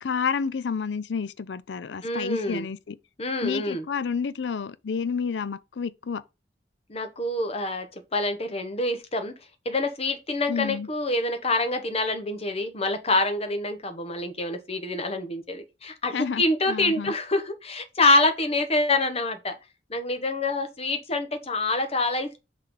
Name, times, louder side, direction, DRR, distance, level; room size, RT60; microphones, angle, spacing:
voice 1, 0.0-3.0 3.4-6.2 10.5-10.9 16.1-17.1, left 6 dB, 70° left, 0.5 m, -30 dB
voice 2, 2.0-2.7 3.2-3.8 6.9-9.3 9.6-19.6 19.9-22.4, left 2 dB, 35° left, 1.0 m, -26 dB
5.8 x 3.2 x 5.4 m
head